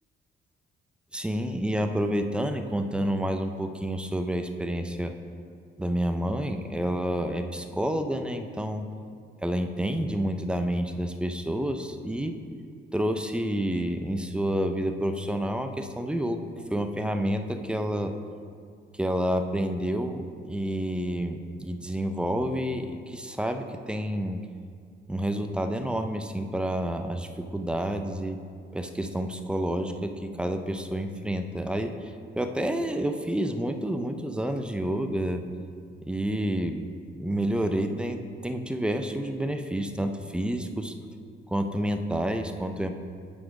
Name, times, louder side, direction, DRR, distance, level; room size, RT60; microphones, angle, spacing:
voice 1, 1.1-5.1 5.8-8.9 9.4-12.4 12.9-18.1 18.9-24.4 25.1-28.4 28.7-35.4 36.1-36.9 37.1-40.9 41.5-42.9, right 1 dB, 5° right, 7 dB, 0.5 m, -29 dB
7.9 x 4.3 x 4.8 m, 2.2 s
cardioid pair, 90°, 20 cm